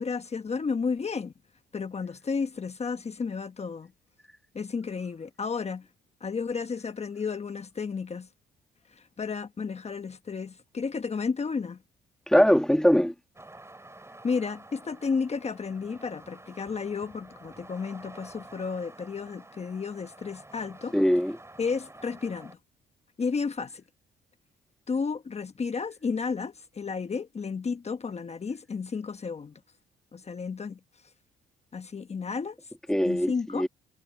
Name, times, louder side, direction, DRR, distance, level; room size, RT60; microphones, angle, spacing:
voice 1, 0.0-1.3 1.7-3.9 4.5-5.9 6.2-8.3 8.9-11.8 14.2-20.9 21.6-22.6 23.2-23.8 24.9-29.5 30.1-30.8 31.7-32.6 33.0-33.7, left 5 dB, 35° left, 1.2 m, -32 dB
voice 2, 12.3-13.1 20.9-21.4 32.9-33.7, equal, 5° left, 1.4 m, -21 dB
sound 1, 13.4-22.6, right 2 dB, 15° right, 4.3 m, -50 dB
cardioid pair, 90°, 20 cm